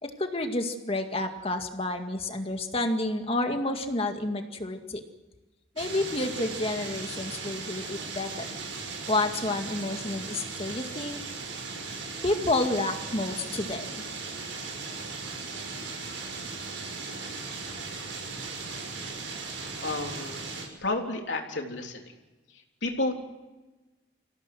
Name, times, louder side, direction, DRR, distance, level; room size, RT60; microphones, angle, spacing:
voice 1, 0.0-5.0 5.8-8.5 9.1-11.2 12.2-14.0, left 2 dB, 30° left, 5 dB, 2.0 m, -30 dB
sound 1, 5.8-20.7, right 4 dB, 90° right, 6.5 m, -37 dB
voice 2, 19.8-20.4 20.8-22.1 22.8-23.1, left 2 dB, 70° left, 2 dB, 3.7 m, -31 dB
26.0 x 17.0 x 7.7 m, 1.2 s
head